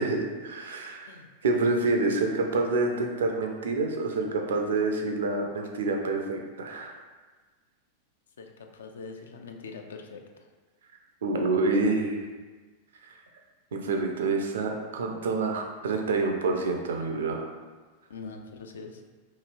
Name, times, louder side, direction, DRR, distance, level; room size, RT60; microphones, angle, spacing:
voice 1, 0.0-1.1 1.4-7.0 11.2-12.3 13.7-17.5, right 3 dB, 65° right, 3 dB, 0.4 m, -27 dB
voice 2, 8.4-10.2 18.1-19.0, left 4 dB, 65° left, 4 dB, 0.3 m, -43 dB
3.0 x 2.7 x 2.4 m, 1.3 s
figure-of-eight pair, 90°, 0 cm